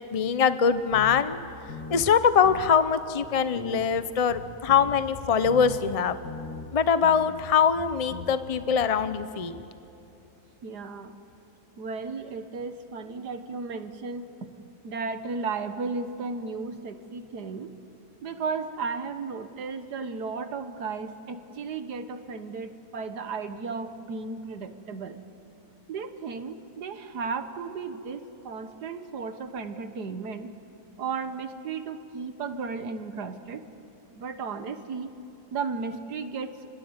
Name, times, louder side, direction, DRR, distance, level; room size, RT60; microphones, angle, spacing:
voice 1, 0.1-1.4 1.9-6.1 6.7-9.6, left 7 dB, 60° left, 12 dB, 0.3 m, -23 dB
sound 1, 0.9-1.4 1.7-2.1 2.4-2.7 3.2-3.3 3.6-6.0 6.2-6.7 7.0-7.4 7.7-8.3, left 4 dB, 90° left, 2.3 m, -40 dB
voice 2, 10.6-11.1 11.8-14.5 14.8-17.7 18.2-25.2 25.9-30.5 31.0-33.6 34.2-35.1 35.5-36.6, right 4 dB, 70° right, 9 dB, 1.8 m, -34 dB
30.0 x 21.5 x 8.1 m, 2.8 s
omnidirectional pair, 1.8 m